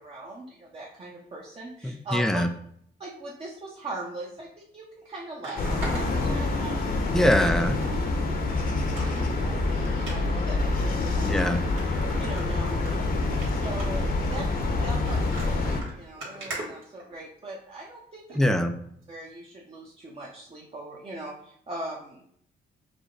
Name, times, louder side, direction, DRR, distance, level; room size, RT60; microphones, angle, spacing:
voice 1, 0.0-2.4 3.0-7.2 8.3-11.4 12.2-13.1 13.4-14.5 14.8-18.4 19.1-22.3, right 2 dB, 30° right, -2 dB, 0.8 m, -40 dB
voice 2, 1.8-2.5 7.1-7.8 11.2-11.6 18.4-18.7, equal, ahead, 8 dB, 0.4 m, -23 dB
sound 1, 4.4-4.5 5.4-6.9 7.4-7.9 8.3-8.4 8.8-9.3 10.0-10.2 10.9-11.0 11.4-11.5 11.8-12.9 13.3-13.5 13.8-14.1 14.8-17.5 18.3-18.5 19.0-19.1, right 2 dB, 85° right, 1.7 m, -40 dB
sound 2, 5.6-15.8, left 2 dB, 45° left, 0.8 m, -26 dB
5.0 x 2.1 x 3.8 m, 0.67 s
cardioid pair, 90°, 20 cm